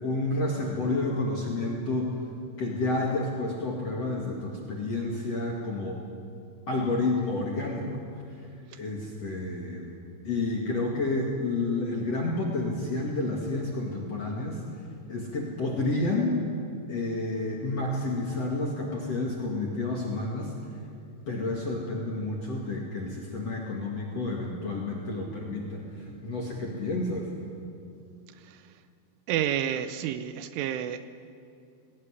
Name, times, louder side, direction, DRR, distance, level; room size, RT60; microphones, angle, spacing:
voice 1, 0.0-2.2 2.6-6.0 6.7-7.9 8.8-9.9 10.2-14.6 15.1-16.4 16.9-20.5 21.3-27.3, left 2 dB, 45° left, -1 dB, 2.3 m, -30 dB
voice 2, 29.3-31.1, right 10 dB, 80° right, 11 dB, 3.1 m, -29 dB
20.0 x 18.5 x 9.9 m, 2.5 s
omnidirectional pair, 5.9 m